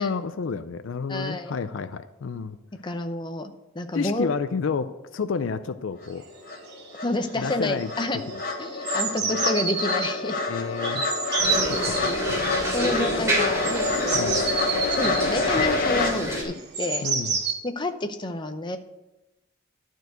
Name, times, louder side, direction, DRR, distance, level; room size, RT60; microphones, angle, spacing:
voice 1, 0.0-2.6 3.9-6.2 7.3-7.9 8.3-8.4 9.2-9.3 10.5-11.1 11.7-12.0 12.3-12.5 14.1-14.4 17.0-17.4, left 5 dB, 65° left, 12 dB, 0.4 m, -30 dB
voice 2, 1.1-1.6 2.8-4.3 7.0-8.2 8.6-10.4 11.5-12.2 12.7-14.3 14.9-17.0 17.6-18.8, left 2 dB, 20° left, 7 dB, 0.7 m, -29 dB
sound 1, 6.0-6.1 6.5-16.1, left 3 dB, 45° left, 1.3 m, -28 dB
sound 2, 6.2-6.3 6.5-6.9 7.2-7.5 7.8-10.1 10.8-12.2 13.2-17.5, right 5 dB, 55° right, 1.6 m, -29 dB
sound 3, 11.4-16.4, equal, 15° right, 2.8 m, -29 dB
12.0 x 4.6 x 7.8 m, 0.98 s
head